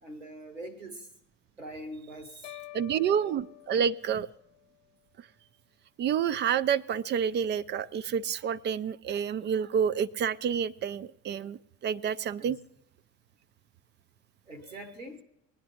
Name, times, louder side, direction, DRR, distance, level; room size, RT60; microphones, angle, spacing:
voice 1, 0.0-1.1 1.6-2.5 12.4-12.6 14.5-15.2, right 1 dB, 85° right, 8 dB, 1.2 m, -43 dB
sound 1, 2.4-4.7, left 19 dB, 75° left, 0.6 m, -48 dB
voice 2, 2.7-4.3 6.0-12.6, right 8 dB, 30° right, 17 dB, 0.4 m, -29 dB
20.5 x 9.8 x 2.8 m, 0.82 s
figure-of-eight pair, 55°, 37 cm